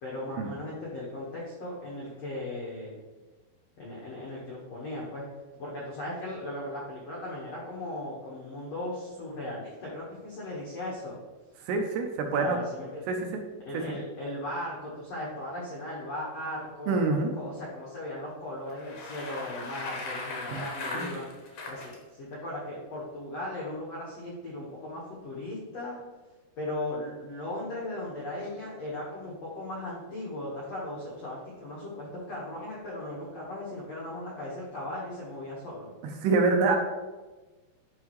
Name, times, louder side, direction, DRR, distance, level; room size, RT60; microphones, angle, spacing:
voice 1, 0.0-3.0 3.8-5.2 5.6-11.2 12.3-13.0 13.6-21.3 21.6-26.0 26.6-35.9, left 1 dB, 70° left, -5 dB, 1.5 m, -37 dB
voice 2, 11.7-12.6 13.1-13.2 16.9-17.3 20.5-20.6 20.9-21.1 36.2-36.8, right 4 dB, 75° right, 3 dB, 2.6 m, -25 dB
Bicycle, 18.7-21.9, left 3 dB, 85° left, 1.4 m, -38 dB
9.5 x 5.4 x 3.1 m, 1.2 s
omnidirectional pair, 5.0 m